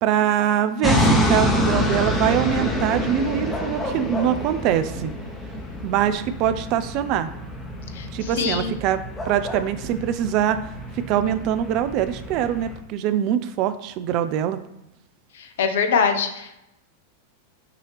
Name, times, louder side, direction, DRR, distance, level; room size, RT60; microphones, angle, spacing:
voice 1, 0.0-5.1 5.8-7.3 8.1-10.6 10.9-14.6, right 10 dB, 40° right, 11 dB, 0.3 m, -23 dB
sound 1, 0.8-12.7, equal, 10° left, 0.9 m, -27 dB
voice 2, 7.9-8.8 15.3-16.6, left 6 dB, 60° left, 6 dB, 0.6 m, -24 dB
6.0 x 2.8 x 3.2 m, 0.86 s
figure-of-eight pair, 90°, 0 cm